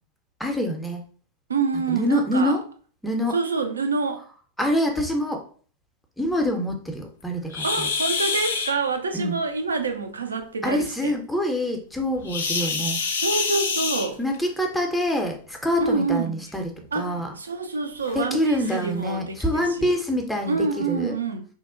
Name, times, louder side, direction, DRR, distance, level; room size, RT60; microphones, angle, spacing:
voice 1, 0.4-1.0 1.9-2.6 3.0-3.4 4.6-5.4 6.2-7.9 9.1-9.4 10.6-13.0 14.2-17.3 18.1-21.2, left 1 dB, 5° left, 0.5 m, -26 dB
voice 2, 1.5-2.6 3.3-4.2 7.6-11.1 13.1-14.2 15.8-16.4 16.9-19.9 20.5-21.5, right 4 dB, 75° right, 0.3 m, -27 dB
sound 1, 7.5-8.7 12.2-14.5 15.7-15.9 16.5-16.6 17.1-17.2 18.0-18.1 18.6-18.8, left 4 dB, 65° left, 0.4 m, -26 dB
2.7 x 2.1 x 2.3 m
figure-of-eight pair, 90°, 0 cm